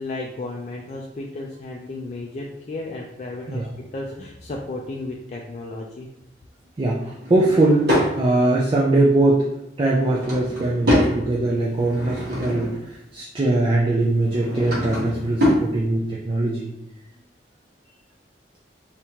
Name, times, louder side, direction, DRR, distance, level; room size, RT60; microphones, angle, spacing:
voice 1, 0.0-6.1, left 2 dB, 40° left, -1 dB, 0.3 m, -33 dB
voice 2, 6.8-7.9 8.1-9.5 9.8-16.7, right 2 dB, 30° right, -3 dB, 0.4 m, -21 dB
Drawer open or close / Wood, 7.2-8.1 9.8-11.2 11.7-12.8 14.2-15.7, equal, 65° right, 1.2 m, -24 dB
3.5 x 2.8 x 2.8 m, 0.85 s
head